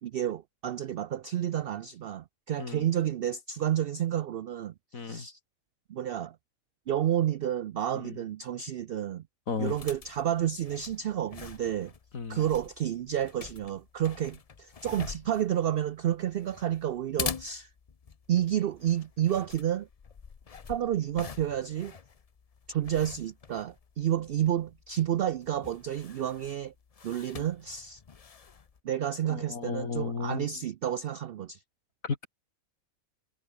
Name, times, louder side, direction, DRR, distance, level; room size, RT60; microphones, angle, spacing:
voice 1, 0.0-4.7 5.0-5.4 5.9-6.4 6.9-9.2 9.6-11.9 12.3-17.7 18.3-19.9 20.7-22.0 22.7-26.7 27.0-28.0 28.8-31.6, right 11 dB, 70° right, 0.5 m, -30 dB
voice 2, 4.9-5.3 7.9-8.2 9.5-9.7 12.1-12.4 29.3-30.5 32.0-32.3, left 5 dB, 70° left, 2.6 m, -34 dB
sound 1, 9.5-28.8, left 6 dB, 35° left, 0.6 m, -45 dB
omnidirectional pair, 1.5 m